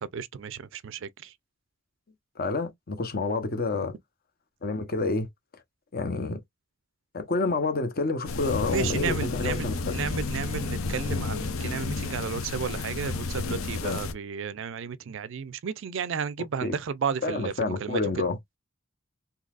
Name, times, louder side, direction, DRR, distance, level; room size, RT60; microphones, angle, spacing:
voice 1, 0.0-1.3 8.4-18.2, right 6 dB, 60° right, 0.4 m, -33 dB
voice 2, 2.4-4.0 4.6-5.3 5.9-6.4 7.1-10.0 13.8-14.0 16.6-16.8 17.2-18.4, left 3 dB, 45° left, 0.8 m, -28 dB
sound 1, 8.2-14.1, left 3 dB, 75° left, 0.7 m, -31 dB
3.9 x 2.8 x 2.4 m
head